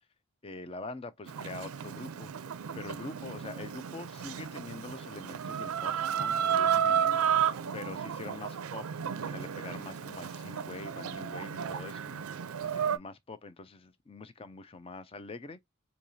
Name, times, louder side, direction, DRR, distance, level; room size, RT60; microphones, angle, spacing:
voice 1, 0.4-7.2 7.7-15.6, left 3 dB, 25° left, 0.4 m, -45 dB
Chicken rooster, 1.3-13.0, right 8 dB, 80° right, 0.5 m, -32 dB
4.6 x 2.7 x 2.6 m
head